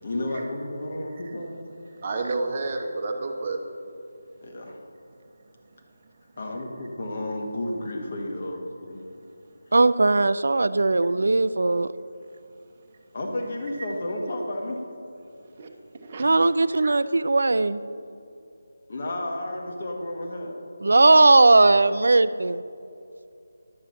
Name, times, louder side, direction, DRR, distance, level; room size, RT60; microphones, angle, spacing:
voice 1, 0.0-1.6 4.4-4.8 6.4-9.0 13.1-14.8 18.9-20.5, left 1 dB, 40° left, 1 dB, 1.6 m, -32 dB
voice 2, 2.0-3.6 15.6-15.7 16.0-16.3 16.8-16.9, right 3 dB, 35° right, 3 dB, 1.0 m, -30 dB
voice 3, 9.7-11.9 16.2-17.8 20.8-22.6, right 2 dB, 60° right, 15 dB, 0.3 m, -18 dB
11.0 x 7.3 x 4.1 m, 2.5 s
figure-of-eight pair, 155°, 0 cm